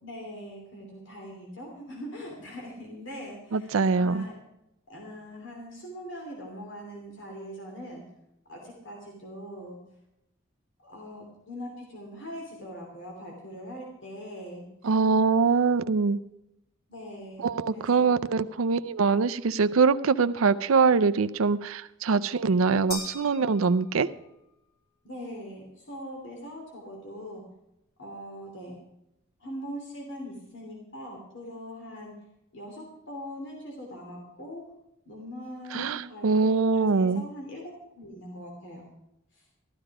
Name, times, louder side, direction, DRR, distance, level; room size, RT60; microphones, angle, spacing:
voice 1, 0.0-4.4 4.9-8.0 8.5-9.8 10.8-14.9 16.9-18.1 25.0-27.4 28.0-28.7 29.4-32.1 32.5-34.6 35.0-37.6 37.9-38.9 39.3-39.4, equal, 65° left, 0 dB, 3.1 m, -41 dB
voice 2, 3.5-4.3 14.8-16.2 17.4-24.1 35.7-37.2, right 4 dB, 85° right, 12 dB, 0.5 m, -23 dB
sound 1, 22.9-24.4, left 2 dB, 50° left, 2.6 m, -40 dB
13.5 x 13.0 x 4.8 m, 0.85 s
head